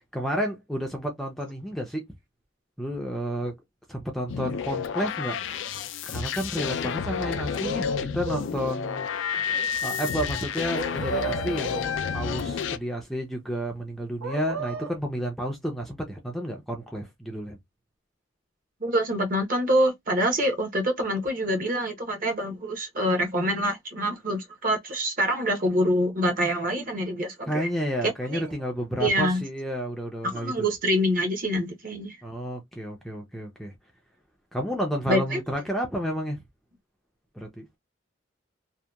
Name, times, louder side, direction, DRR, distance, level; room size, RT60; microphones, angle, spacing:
voice 1, 0.1-2.0 2.8-3.5 3.9-5.4 6.0-9.4 9.8-17.6 27.5-30.7 32.2-33.7 34.5-36.4 37.3-37.7, equal, ahead, 0.4 m, -31 dB
sound 1, 4.3-12.8, left 7 dB, 65° left, 0.3 m, -31 dB
sound 2, 7.2-8.5 10.7-11.9 14.2-15.0, right 2 dB, 90° right, 0.8 m, -33 dB
sound 3, 8.9-11.5, left 6 dB, 90° left, 0.7 m, -32 dB
voice 2, 18.8-27.7 28.0-28.5 29.0-29.4 30.2-32.2 35.1-35.4, equal, 45° right, 0.8 m, -26 dB
2.8 x 2.2 x 2.2 m
head